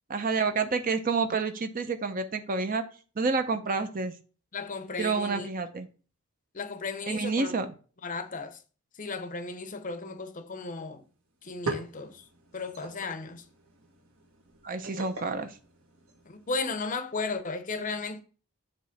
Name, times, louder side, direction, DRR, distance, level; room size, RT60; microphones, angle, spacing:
voice 1, 0.1-2.8 3.2-4.2 5.0-5.9 7.1-7.7 14.6-15.5, right 4 dB, 40° right, 0.6 m, -29 dB
voice 2, 4.5-5.5 6.5-7.5 8.0-8.6 9.0-11.0 11.4-12.2 12.5-13.4 16.3-18.2, left 4 dB, 35° left, 0.7 m, -35 dB
sound 1, 10.9-11.0 11.3-16.5, right 3 dB, 70° right, 1.5 m, -41 dB
7.5 x 3.1 x 5.7 m
head